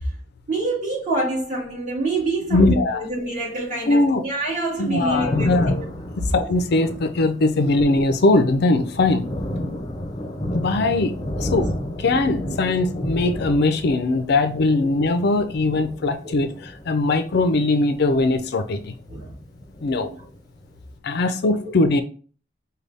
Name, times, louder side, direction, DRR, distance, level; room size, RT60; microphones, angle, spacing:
voice 1, 0.5-5.8 14.8-14.9 16.2-16.3 19.1-19.3 20.2-20.3, right 2 dB, 40° right, 1.8 m, -26 dB
voice 2, 2.5-3.0 3.9-4.2 4.8-5.7 6.3-9.3 10.5-11.7 12.0-18.9 19.8-20.1 21.0-22.0, left 2 dB, 60° left, 0.5 m, -20 dB
Thunder, 4.7-19.2 19.4-20.7, left 1 dB, 20° left, 0.7 m, -32 dB
5.3 x 2.2 x 3.3 m
head